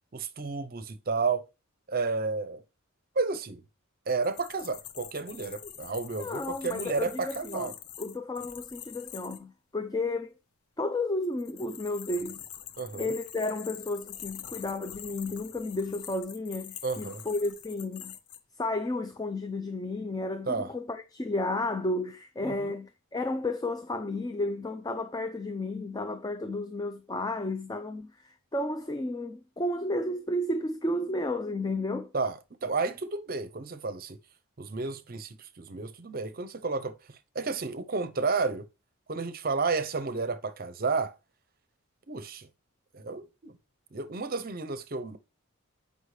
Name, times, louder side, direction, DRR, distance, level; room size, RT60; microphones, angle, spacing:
voice 1, 0.1-1.4 1.9-2.6 3.2-3.6 4.1-7.7 12.8-13.1 16.8-17.2 20.5-20.7 22.4-22.7 32.1-34.2 34.6-36.9 37.3-38.7 39.1-41.1 42.1-42.5 42.9-43.5 43.9-45.2, right 4 dB, 40° right, 0.6 m, -31 dB
sound 1, 4.1-9.4 11.2-18.4, left 10 dB, 85° left, 0.8 m, -45 dB
voice 2, 6.2-10.3 10.8-12.4 12.9-18.1 18.6-32.1, left 2 dB, 20° left, 0.4 m, -32 dB
7.9 x 5.3 x 3.2 m
head